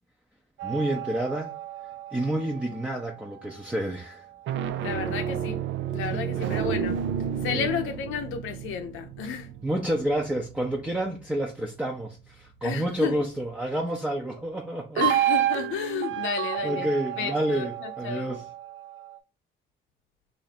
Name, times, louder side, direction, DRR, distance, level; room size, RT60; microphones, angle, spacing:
voice 1, 0.6-1.5 2.1-4.3 6.1-6.5 7.5-7.7 9.2-15.0 16.6-18.4, right 1 dB, 5° right, 0.6 m, -29 dB
sound 1, 0.6-3.2 4.3-11.1 15.0-19.2, right 11 dB, 75° right, 0.4 m, -31 dB
voice 2, 4.8-5.6 5.9-7.0 7.4-9.5 12.6-13.2 14.9-16.9 17.2-18.3, left 8 dB, 85° left, 0.6 m, -32 dB
2.8 x 2.6 x 4.1 m
cardioid pair, 90°, 20 cm